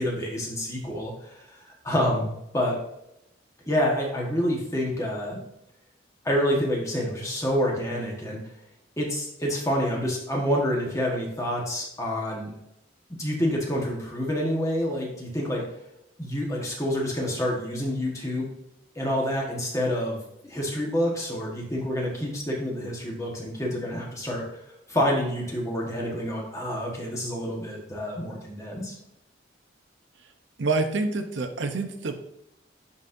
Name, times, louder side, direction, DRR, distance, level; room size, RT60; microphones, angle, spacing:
voice 1, 0.0-1.4 1.8-2.8 3.7-5.4 6.2-8.4 9.0-12.5 13.2-15.6 16.2-18.5 18.9-24.6 24.9-28.9, equal, 15° left, -2 dB, 1.3 m, -28 dB
voice 2, 30.6-32.2, right 3 dB, 80° right, 6 dB, 0.7 m, -27 dB
10.5 x 4.1 x 2.6 m, 0.84 s
head